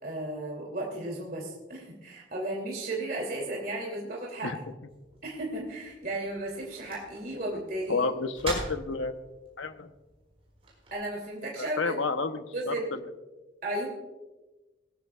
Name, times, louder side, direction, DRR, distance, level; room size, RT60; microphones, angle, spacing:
voice 1, 0.0-4.5 5.2-8.1 10.9-11.9 12.5-12.9 13.6-13.9, right 1 dB, 45° right, -2 dB, 2.9 m, -34 dB
sound 1, 4.9-10.9, right 2 dB, 30° right, 5.6 m, -43 dB
voice 2, 7.9-9.1 9.6-9.9 11.6-13.0, left 4 dB, 80° left, 9 dB, 0.9 m, -30 dB
19.5 x 15.0 x 2.4 m, 1.1 s
head